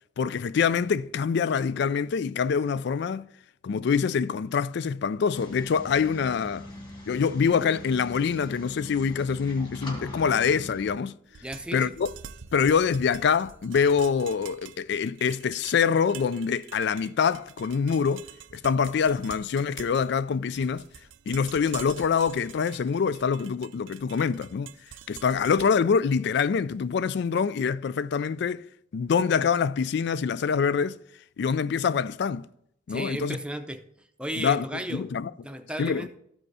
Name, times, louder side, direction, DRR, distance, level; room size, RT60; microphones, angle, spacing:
voice 1, 0.2-3.3 3.6-6.7 7.1-11.1 11.7-12.1 12.5-18.3 18.5-20.8 21.3-24.7 25.1-28.6 28.9-31.0 31.4-32.5 32.9-33.4 34.4-34.6 34.9-35.3 35.8-36.1, left 6 dB, 60° left, 0.3 m, -25 dB
sound 1, 5.3-10.9, left 1 dB, 25° left, 2.0 m, -42 dB
sound 2, 11.3-27.3, right 9 dB, 75° right, 0.5 m, -47 dB
voice 2, 11.4-11.9 32.9-33.8 34.2-35.1 35.4-36.1, right 1 dB, 5° right, 0.6 m, -34 dB
13.0 x 5.2 x 4.7 m
head